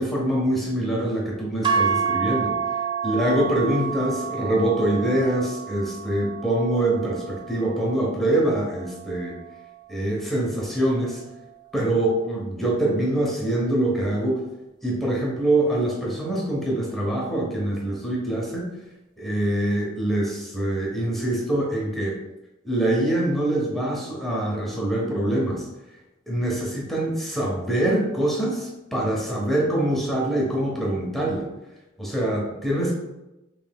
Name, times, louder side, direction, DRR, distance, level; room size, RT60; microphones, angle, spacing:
voice 1, 0.0-2.5 3.0-9.3 9.9-11.2 11.7-14.4 14.8-18.7 19.2-22.2 22.6-25.7 26.3-31.5 32.0-32.9, right 1 dB, ahead, -4 dB, 0.8 m, -24 dB
sound 1, 1.6-9.9, right 6 dB, 25° right, 0.3 m, -30 dB
5.4 x 3.3 x 2.3 m, 0.98 s
head